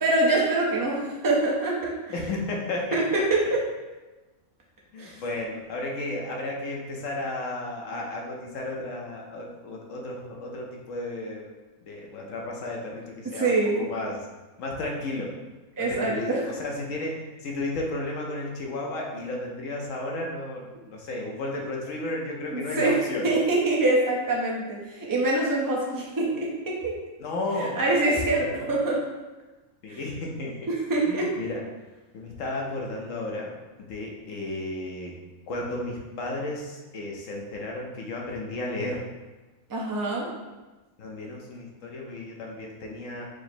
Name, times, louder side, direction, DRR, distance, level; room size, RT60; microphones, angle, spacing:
voice 1, 0.0-1.9 2.9-3.0 3.3-3.4 5.0-5.1 13.3-13.9 15.8-16.4 22.5-23.0 23.2-26.9 27.6-29.0 29.9-30.0 30.7-31.3 39.7-40.3, right 2 dB, 25° right, -3 dB, 0.4 m, -25 dB
voice 2, 2.1-3.2 4.9-11.5 11.9-14.2 14.6-15.3 15.8-23.3 27.2-28.8 29.8-30.6 31.0-31.6 32.1-33.5 33.9-35.1 35.5-39.0 41.0-43.3, left 2 dB, 70° left, -1 dB, 1.0 m, -33 dB
4.8 x 2.0 x 4.3 m, 1.2 s
omnidirectional pair, 1.5 m